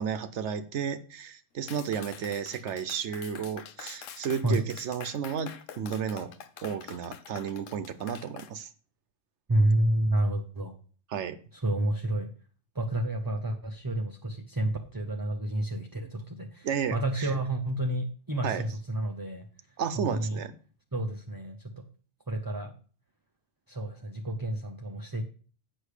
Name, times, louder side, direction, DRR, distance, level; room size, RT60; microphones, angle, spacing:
voice 1, 0.0-6.3 6.6-8.7 11.1-11.4 16.6-17.3 18.4-18.6 19.8-20.5, right 7 dB, 70° right, 11 dB, 0.9 m, -33 dB
Clapping, 1.7-8.5, left 8 dB, 85° left, 1.1 m, -46 dB
voice 2, 9.5-10.8 11.5-12.3 12.7-19.5 19.9-20.4 20.9-21.9 22.3-22.7 23.7-25.2, right 1 dB, 25° right, 2 dB, 0.5 m, -30 dB
8.2 x 6.3 x 4.9 m, 0.40 s
omnidirectional pair, 1.3 m